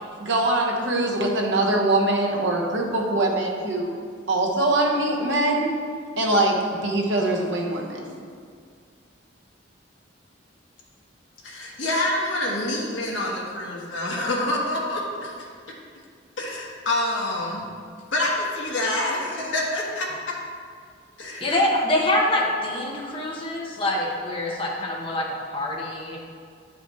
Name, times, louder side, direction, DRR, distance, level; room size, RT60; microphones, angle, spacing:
voice 1, 0.2-3.9 4.3-5.7 6.2-8.1, right 2 dB, 75° right, -1 dB, 1.1 m, -23 dB
voice 2, 11.4-15.4 16.4-17.7 18.1-20.1 21.2-21.5, left 1 dB, 80° left, -3 dB, 1.3 m, -27 dB
voice 3, 21.4-26.2, left 1 dB, 30° left, -2 dB, 0.9 m, -25 dB
9.5 x 4.9 x 3.1 m, 2.1 s
head